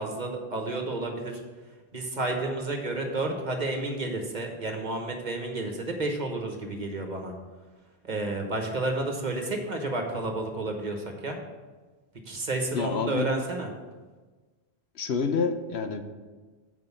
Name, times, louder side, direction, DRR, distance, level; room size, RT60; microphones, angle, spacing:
voice 1, 0.0-1.4 1.9-7.3 8.0-11.4 12.3-13.7, right 2 dB, 45° right, 3 dB, 1.2 m, -31 dB
voice 2, 12.7-13.3 14.9-16.0, left 5 dB, 75° left, 7 dB, 1.0 m, -28 dB
7.8 x 5.1 x 6.9 m, 1.3 s
omnidirectional pair, 1.1 m